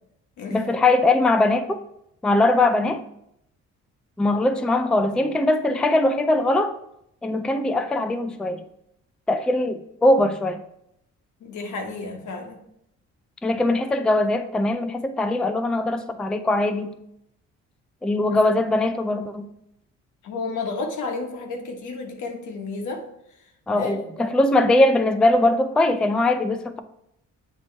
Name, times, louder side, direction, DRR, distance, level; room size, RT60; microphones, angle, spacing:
voice 1, 0.5-1.8 2.2-3.0 4.2-6.8 7.2-8.6 9.3-10.6 13.4-17.0 18.0-19.5 23.7-26.8, left 2 dB, 5° left, 0.3 m, -21 dB
voice 2, 11.4-12.6 18.4-18.5 20.2-23.0 23.7-24.4, left 3 dB, 80° left, 1.2 m, -32 dB
7.6 x 3.0 x 4.4 m
cardioid pair, 90°, 30 cm